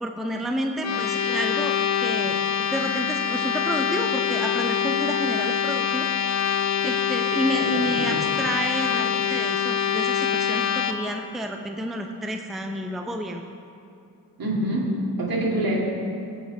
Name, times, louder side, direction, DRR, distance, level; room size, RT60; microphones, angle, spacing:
voice 1, 0.0-6.1 6.8-13.4, equal, ahead, 4 dB, 0.6 m, -30 dB
sound 1, 0.8-10.9, left 8 dB, 45° left, 0.7 m, -25 dB
voice 2, 7.5-8.2 14.4-15.8, right 1 dB, 60° right, -3 dB, 2.3 m, -26 dB
16.0 x 5.7 x 3.3 m, 2.7 s
cardioid pair, 60°, 39 cm